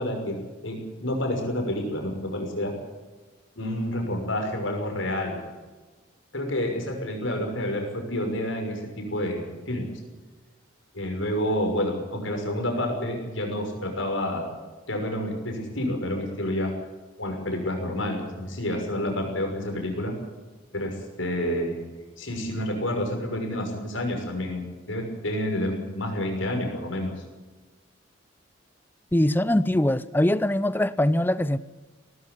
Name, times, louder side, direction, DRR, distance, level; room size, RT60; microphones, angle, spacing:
voice 1, 0.0-2.7 3.6-5.5 6.3-9.9 10.9-14.5 14.9-16.7 17.2-20.1 20.7-21.8 22.2-27.1, left 1 dB, 75° left, 6.1 m, -29 dB
voice 2, 29.1-31.6, left 1 dB, 10° left, 0.6 m, -22 dB
19.0 x 14.0 x 10.0 m
head